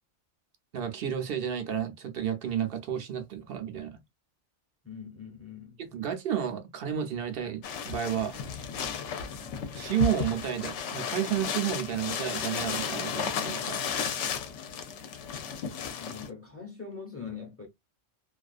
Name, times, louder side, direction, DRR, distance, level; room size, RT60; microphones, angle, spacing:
voice 1, 0.7-4.0 5.8-8.4 9.7-13.9, right 9 dB, 60° right, 0.7 m, -31 dB
voice 2, 4.8-5.8 15.9-17.7, left 6 dB, 15° left, 0.6 m, -42 dB
sound 1, 7.6-16.3, left 7 dB, 75° left, 0.9 m, -34 dB
2.4 x 2.3 x 2.3 m
omnidirectional pair, 1.2 m